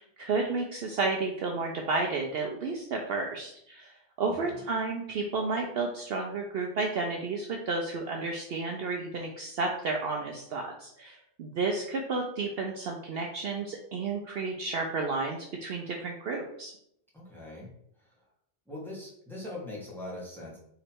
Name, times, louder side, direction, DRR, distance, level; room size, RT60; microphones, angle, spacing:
voice 1, 0.0-16.7, right 3 dB, 60° right, 2 dB, 0.7 m, -32 dB
voice 2, 4.2-4.6 17.1-17.7 18.0-18.1 18.7-20.6, left 1 dB, ahead, -5 dB, 1.4 m, -41 dB
3.8 x 3.1 x 4.4 m, 0.72 s
omnidirectional pair, 1.2 m